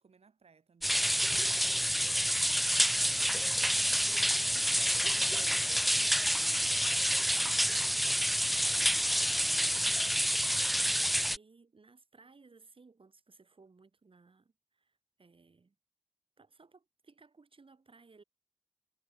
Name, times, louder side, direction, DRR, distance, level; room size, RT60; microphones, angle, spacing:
voice 1, 0.0-1.1 4.9-5.7 8.6-10.0, right 5 dB, 90° right, 2.3 m, -62 dB
sound 1, 0.8-11.4, equal, ahead, 0.3 m, -28 dB
voice 2, 1.2-9.3 9.9-10.7 11.3-15.8 16.4-18.2, right 4 dB, 60° right, 4.3 m, -61 dB
wide cardioid pair, 90°, 10 cm